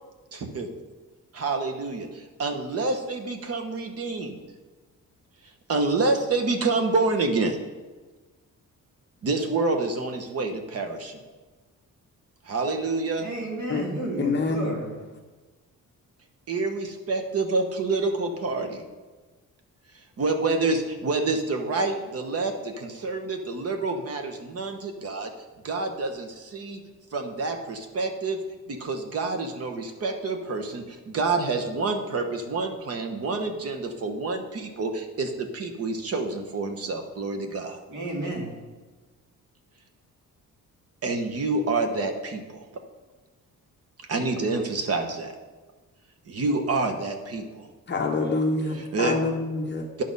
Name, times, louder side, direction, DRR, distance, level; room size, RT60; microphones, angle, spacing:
voice 1, 0.3-0.7 1.3-4.4 5.7-7.6 9.2-11.2 12.4-13.3 16.5-18.8 20.2-25.3 25.6-26.8 27.1-28.4 28.7-37.8 41.0-42.6 44.1-45.3 46.2-47.7 48.7-49.1 50.0-50.1, right 3 dB, 45° right, 5 dB, 1.1 m, -28 dB
voice 2, 13.2-14.9 37.9-38.5, right 1 dB, 65° right, -2 dB, 2.6 m, -32 dB
voice 3, 14.2-14.8 47.9-49.9, left 3 dB, 35° left, 1 dB, 0.8 m, -26 dB
10.0 x 6.4 x 5.4 m, 1.3 s
wide cardioid pair, 155°, 32 cm